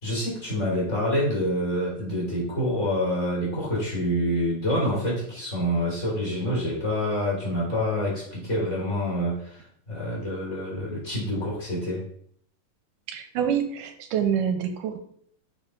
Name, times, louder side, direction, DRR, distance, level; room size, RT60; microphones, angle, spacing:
voice 1, 0.0-12.0, equal, 20° left, -4 dB, 3.5 m, -27 dB
voice 2, 13.1-15.0, right 8 dB, 75° right, 7 dB, 2.4 m, -26 dB
6.6 x 5.2 x 5.8 m, 0.62 s
omnidirectional pair, 3.9 m